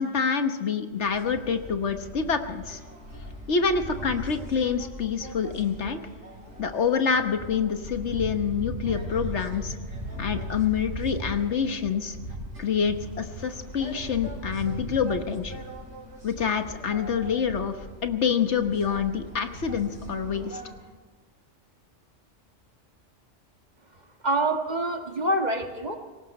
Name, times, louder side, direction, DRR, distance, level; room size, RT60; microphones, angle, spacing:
voice 1, 0.0-2.8 3.5-6.0 6.6-9.7 10.2-12.2 12.6-15.6 16.2-17.8 18.0-20.6, left 6 dB, 65° left, 7 dB, 1.4 m, -27 dB
sound 1, 0.9-20.7, equal, 65° right, 5.7 m, -39 dB
voice 2, 24.2-26.0, right 1 dB, 35° right, 4 dB, 1.7 m, -26 dB
19.5 x 17.5 x 4.2 m, 1.4 s
omnidirectional pair, 1.3 m